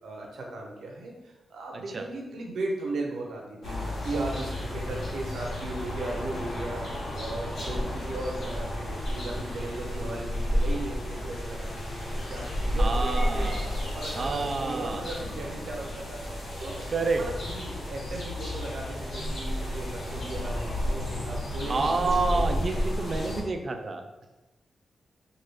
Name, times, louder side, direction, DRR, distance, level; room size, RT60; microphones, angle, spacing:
voice 1, 0.0-13.5 13.9-16.9 17.1-22.5 22.7-22.9, right 2 dB, 85° right, 0 dB, 0.7 m, -37 dB
voice 2, 1.7-2.1 12.8-13.7 14.1-15.0 16.9-17.2 21.6-24.3, right 3 dB, 45° right, 5 dB, 0.4 m, -29 dB
sound 1, 3.6-23.4, equal, 70° left, 1.0 m, -32 dB
3.2 x 2.4 x 3.4 m, 1.1 s
cardioid pair, 85°, 0 cm